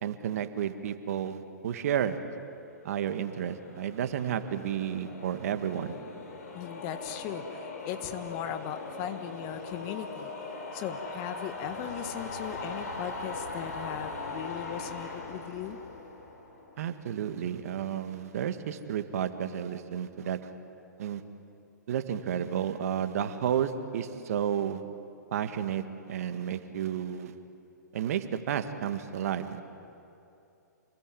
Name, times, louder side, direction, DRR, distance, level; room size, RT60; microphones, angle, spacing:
voice 1, 0.0-2.2 2.8-6.0 16.8-20.5 21.0-21.2 21.9-24.8 25.3-27.3 27.9-29.6, right 9 dB, 55° right, 9 dB, 1.8 m, -32 dB
sound 1, 2.8-17.1, left 3 dB, 60° left, 5.7 m, -41 dB
voice 2, 6.5-10.3 10.7-15.8, left 10 dB, 35° left, 9 dB, 1.7 m, -38 dB
28.0 x 20.5 x 9.4 m, 2.7 s
hypercardioid pair, 120°, 10 cm